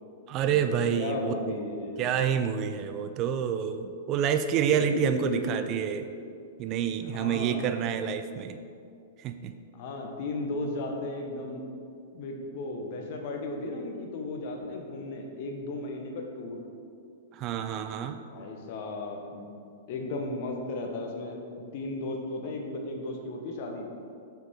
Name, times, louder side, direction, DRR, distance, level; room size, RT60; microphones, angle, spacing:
voice 1, 0.3-1.3 2.0-6.1 6.6-8.6 9.2-9.5 17.3-18.2, right 8 dB, 35° right, 9 dB, 0.4 m, -28 dB
voice 2, 1.0-2.0 4.6-5.6 7.1-7.7 9.7-11.6 12.1-16.6 18.3-19.5 19.9-21.4 21.7-23.9, left 2 dB, 55° left, 2 dB, 1.0 m, -35 dB
6.6 x 5.9 x 3.6 m, 2.4 s
hypercardioid pair, 110°, 0 cm